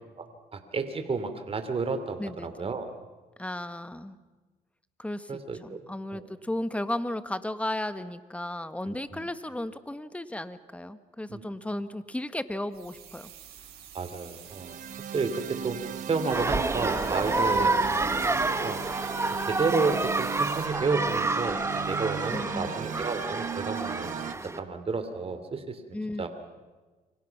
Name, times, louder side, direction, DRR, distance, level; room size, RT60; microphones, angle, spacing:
voice 1, 0.5-2.9 5.3-5.8 6.1-6.2 8.9-9.2 11.3-11.4 13.9-14.8 15.1-15.8 16.1-17.7 18.5-18.8 19.5-24.1 24.6-25.8 26.2-26.3, right 4 dB, 35° right, 8 dB, 2.9 m, -31 dB
voice 2, 2.2-2.7 3.4-4.2 5.0-13.3 17.9-18.1 22.3-22.7 25.9-26.3, left 1 dB, 10° left, 12 dB, 1.5 m, -35 dB
sound 1, 12.7-20.7, right 10 dB, 85° right, 6.2 m, -47 dB
sound 2, 14.4-24.3, right 8 dB, 55° right, 1.2 m, -37 dB
sound 3, 16.3-24.6, right 2 dB, 15° right, 1.2 m, -29 dB
29.5 x 24.5 x 5.9 m, 1.3 s
cardioid pair, 85°, 16 cm